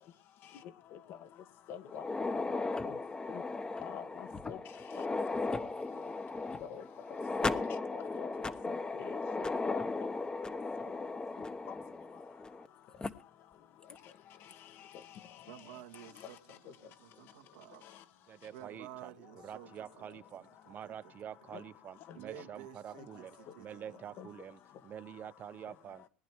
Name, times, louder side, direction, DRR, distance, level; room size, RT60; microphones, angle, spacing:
voice 1, 1.7-2.0 2.5-3.0 3.3-3.4 3.8-4.6 6.6-6.8 7.4-7.6 7.9-8.3 8.7-9.8 24.2-24.3, left 9 dB, 55° left, 1.6 m, -45 dB
sound 1, 1.9-12.7 13.0-13.1 13.9-14.0 14.5-14.6 15.9-16.2, left 3 dB, 20° left, 1.2 m, -37 dB
voice 2, 15.5-17.8 18.5-21.1 21.5-21.7 22.1-24.2, right 13 dB, 80° right, 2.0 m, -53 dB
voice 3, 18.3-19.1 19.4-26.0, right 9 dB, 45° right, 0.8 m, -47 dB
19.5 x 11.0 x 4.6 m
hypercardioid pair, 80°, 4 cm